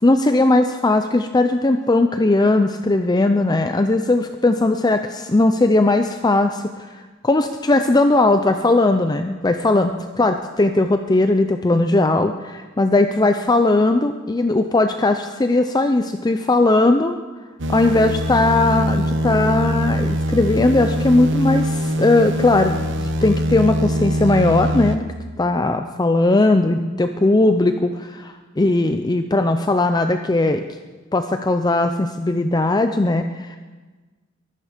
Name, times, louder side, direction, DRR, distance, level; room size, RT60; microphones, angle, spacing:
voice 1, 0.0-17.2 17.7-22.8 23.2-25.1 25.4-30.6 31.1-33.6, left 2 dB, 20° left, 7 dB, 0.5 m, -18 dB
sound 1, 17.6-25.0, equal, 60° right, 1.1 m, -22 dB
23.0 x 11.0 x 5.1 m, 1.3 s
head